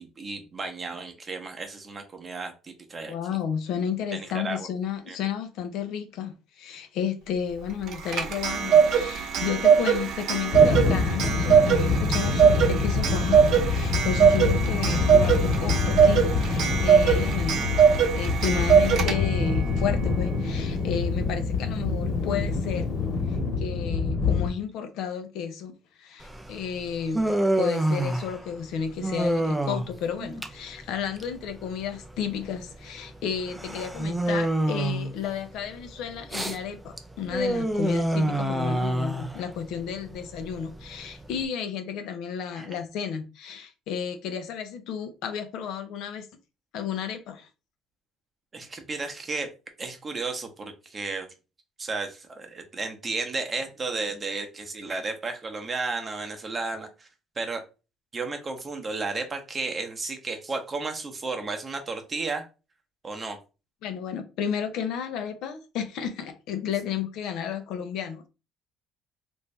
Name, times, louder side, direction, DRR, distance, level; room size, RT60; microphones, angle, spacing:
voice 1, 0.0-3.1 4.1-4.7 5.1-5.2 42.6-42.7 48.5-49.5 49.8-51.3 51.8-57.1 57.4-57.6 58.1-62.5 63.0-63.4, right 3 dB, 25° right, 0.8 m, -33 dB
voice 2, 3.1-17.7 18.1-22.9 23.3-25.7 26.0-46.3 46.7-47.5 63.8-68.3, left 8 dB, 70° left, 0.7 m, -32 dB
Clock, 7.9-19.5, right 7 dB, 60° right, 0.7 m, -21 dB
sound 1, 10.5-24.5, left 4 dB, 40° left, 1.4 m, -26 dB
Human voice, 26.2-41.4, right 1 dB, 5° right, 0.5 m, -29 dB
3.3 x 2.6 x 3.2 m
cardioid pair, 125°, 0 cm